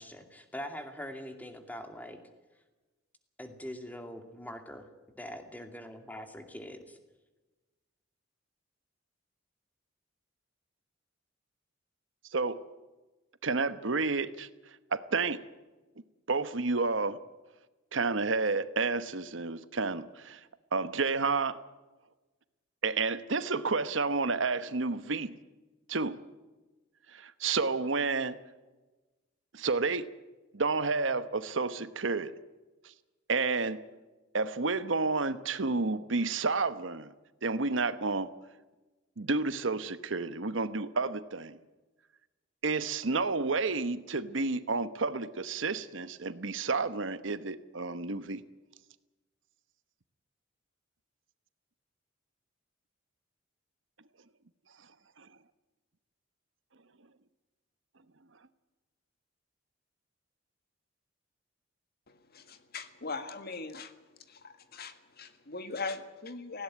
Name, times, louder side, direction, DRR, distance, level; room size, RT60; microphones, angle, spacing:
voice 1, 0.0-2.2 3.4-4.9 5.2-7.0, equal, 10° left, 2.5 m, -43 dB
voice 2, 13.4-14.5 14.9-15.4 16.3-17.2 17.9-20.4 20.7-21.6 22.8-25.3 25.9-26.2 27.1-28.4 29.5-30.1 30.5-32.3 33.3-33.8 34.3-37.1 37.4-38.3 39.2-41.6 42.6-48.4 55.2-55.3, right 4 dB, 70° right, 1.1 m, -30 dB
voice 3, 62.1-63.9 64.3-66.6, left 4 dB, 55° left, 1.8 m, -40 dB
18.5 x 17.0 x 9.9 m
head